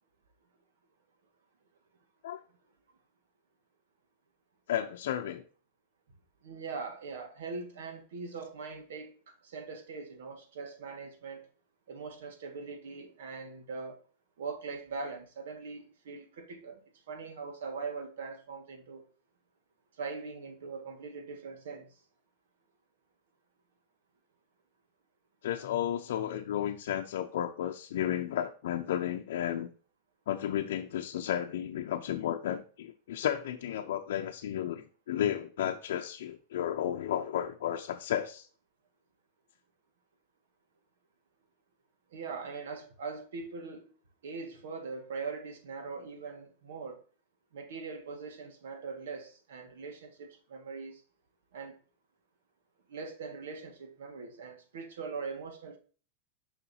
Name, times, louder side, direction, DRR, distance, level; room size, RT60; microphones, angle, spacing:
voice 1, 4.7-5.4 25.4-29.7 30.3-38.5, left 10 dB, 75° left, 0.6 m, -33 dB
voice 2, 6.4-11.5 11.9-14.0 14.4-19.1 20.0-21.9 42.1-44.0 44.2-47.0 47.5-51.0 51.5-51.8 52.9-55.8, right 4 dB, 85° right, 1.7 m, -41 dB
7.0 x 5.6 x 2.7 m
supercardioid pair, 160°, 0 cm